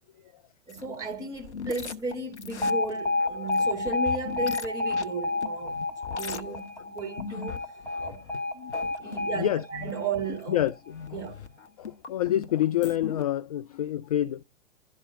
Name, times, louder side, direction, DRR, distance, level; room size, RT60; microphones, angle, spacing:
sound 1, 0.7-13.2, left 6 dB, 75° left, 0.9 m, -41 dB
voice 1, 0.7-5.8 6.1-7.6 8.0-8.3 9.0-10.7 11.1-11.4, right 4 dB, 10° right, 2.5 m, -35 dB
Alarm, 2.6-10.7, left 3 dB, 5° left, 1.8 m, -30 dB
voice 2, 9.0-9.6 10.5-10.7 11.1-11.2 11.8-14.4, left 12 dB, 35° left, 0.4 m, -27 dB
11.5 x 4.2 x 2.5 m
figure-of-eight pair, 110°, 35 cm